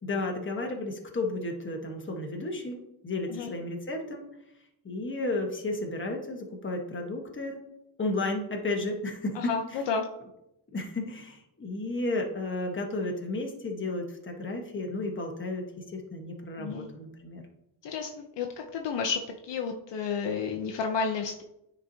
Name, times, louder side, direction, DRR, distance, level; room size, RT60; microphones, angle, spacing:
voice 1, 0.0-4.2 4.8-7.6 8.0-9.8 10.7-17.4, left 2 dB, 25° left, 2 dB, 1.2 m, -33 dB
voice 2, 9.3-10.1 16.6-16.9 17.8-21.4, left 5 dB, 60° left, 3 dB, 0.7 m, -31 dB
9.5 x 4.3 x 2.7 m, 0.85 s
cardioid pair, 110°, 48 cm